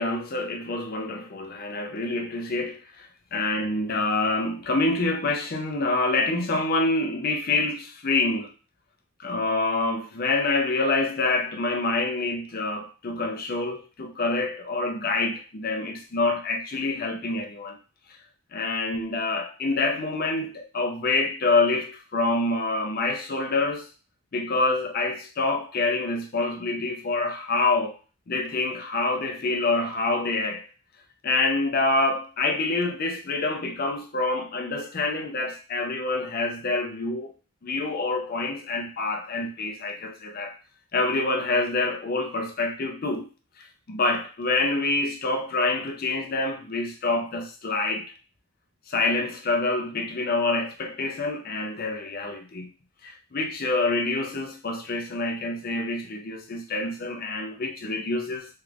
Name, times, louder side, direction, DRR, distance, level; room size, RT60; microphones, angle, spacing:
voice 1, 0.0-8.5 9.2-17.8 18.5-23.9 24.3-27.9 28.3-30.6 31.2-37.3 37.6-40.6 40.9-43.3 43.6-48.1 48.9-52.7 53.0-58.5, left 3 dB, 40° left, 0.5 m, -26 dB
3.2 x 2.4 x 3.3 m
head